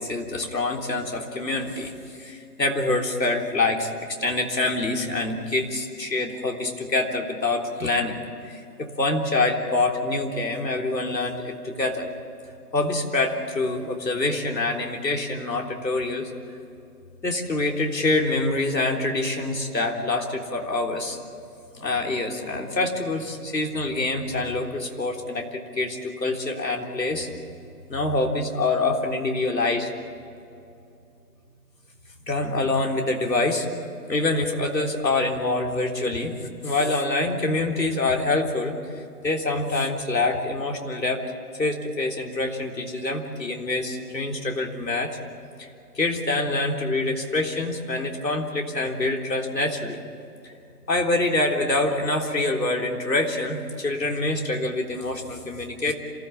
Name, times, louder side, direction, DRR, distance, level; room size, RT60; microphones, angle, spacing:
voice 1, 0.0-12.1 12.7-16.3 17.2-21.2 21.7-27.3 27.9-29.9 32.3-33.7 34.1-36.3 36.6-41.2 41.6-45.2 45.6-45.7 46.0-50.0 50.4-50.5 50.9-55.9, left 2 dB, 85° left, 1 dB, 3.7 m, -26 dB
27.5 x 16.0 x 8.5 m, 2.5 s
figure-of-eight pair, 170°, 49 cm